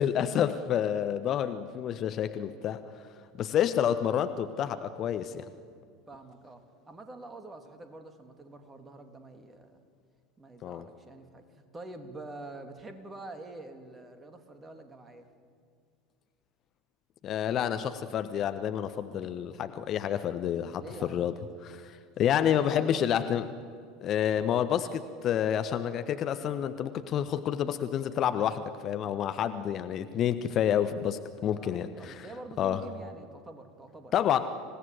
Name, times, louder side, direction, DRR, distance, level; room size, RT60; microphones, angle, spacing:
voice 1, 0.0-2.8 3.3-5.4 10.6-10.8 17.2-20.8 21.1-21.3 21.6-23.5 24.0-32.3 32.6-32.8 34.1-34.5, left 9 dB, 40° left, 10 dB, 1.1 m, -29 dB
voice 2, 6.1-9.8 10.4-15.3 20.8-21.4 22.4-23.0 31.6-34.2, right 2 dB, 20° right, 6 dB, 3.0 m, -46 dB
27.0 x 17.5 x 9.4 m, 2.2 s
figure-of-eight pair, 75°, 0 cm